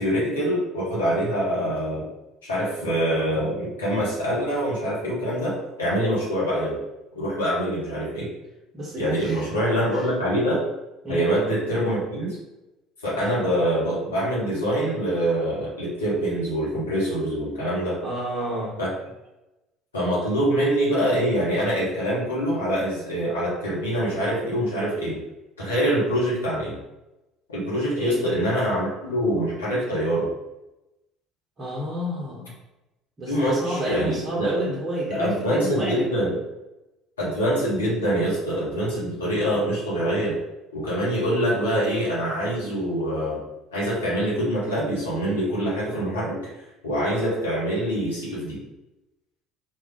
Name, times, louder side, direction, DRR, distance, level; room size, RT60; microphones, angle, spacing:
voice 1, 0.0-2.0 2.4-6.8 7.1-8.3 9.0-10.6 11.1-12.4 13.0-18.0 18.8-18.9 19.9-25.2 25.6-26.8 27.5-30.3 33.3-34.5 35.1-36.4 37.2-40.4 40.7-43.4 43.7-46.5 46.8-48.6, equal, 85° left, -7 dB, 1.4 m, -25 dB
voice 2, 8.7-9.5 9.9-10.1 11.0-11.3 18.0-18.8 28.0-28.2 31.6-32.5 33.2-36.1, right 1 dB, 35° right, -5 dB, 1.1 m, -29 dB
4.4 x 2.5 x 3.8 m, 0.99 s
hypercardioid pair, 60°, 0 cm